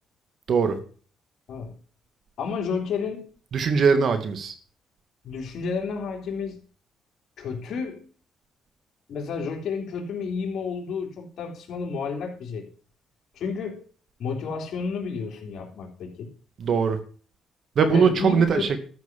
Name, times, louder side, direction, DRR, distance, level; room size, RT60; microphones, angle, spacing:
voice 1, 0.5-0.8 3.5-4.5 16.6-17.0 17.8-18.8, right 5 dB, 60° right, 2.3 m, -21 dB
voice 2, 2.4-3.3 5.2-6.6 7.4-8.0 9.1-12.6 13.4-13.8 14.2-16.3 17.9-18.8, left 5 dB, 70° left, 3.6 m, -31 dB
13.0 x 6.2 x 7.5 m
cardioid pair, 90°, 0 cm